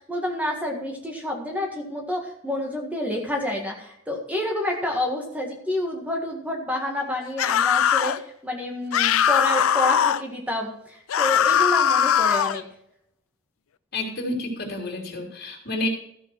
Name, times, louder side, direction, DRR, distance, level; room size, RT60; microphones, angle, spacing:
voice 1, 0.0-12.6, left 1 dB, 5° right, 0 dB, 1.7 m, -29 dB
sound 1, 7.4-8.2 8.9-10.2 11.1-12.6, left 9 dB, 90° left, 0.5 m, -20 dB
voice 2, 13.9-15.9, left 2 dB, 50° left, 2 dB, 3.4 m, -29 dB
14.0 x 6.8 x 6.0 m, 0.74 s
head